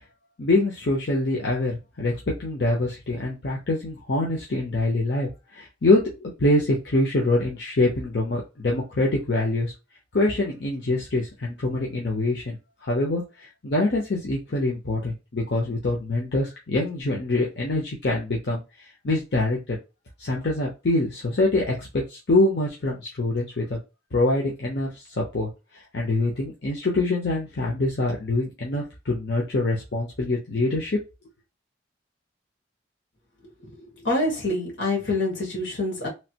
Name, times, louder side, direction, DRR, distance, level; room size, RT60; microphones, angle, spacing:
voice 1, 0.4-2.1 2.4-9.7 10.1-12.6 12.8-18.6 19.0-19.8 20.2-23.8 24.1-24.9 25.2-31.0, left 2 dB, 60° left, 0.8 m, -25 dB
voice 2, 33.8-36.1, left 2 dB, 85° left, 1.7 m, -26 dB
3.2 x 2.5 x 2.9 m
head